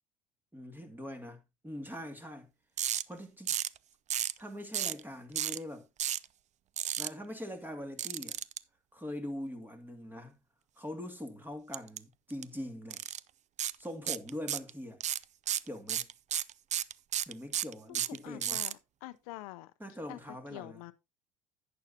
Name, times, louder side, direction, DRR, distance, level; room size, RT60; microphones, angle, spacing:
voice 1, 0.5-2.5 3.1-3.5 4.4-5.9 7.0-8.4 8.9-10.4 10.8-13.0 13.8-15.0 15.6-16.1 17.3-18.6 19.8-20.8, left 1 dB, 10° right, 2.3 m, -42 dB
sound 1, 2.8-3.0 3.5-3.8 4.1-4.4 4.7-5.0 5.3-5.6 6.0-6.2 6.8-7.1 8.0-8.6 11.7-12.0 12.3-12.4 12.9-13.2 13.6-13.7 14.1-14.7 15.0-18.7, right 11 dB, 40° right, 0.4 m, -32 dB
voice 2, 17.9-19.7 20.1-20.2 20.5-20.9, left 18 dB, 80° left, 0.6 m, -46 dB
11.5 x 8.7 x 2.7 m
hypercardioid pair, 65°, 18 cm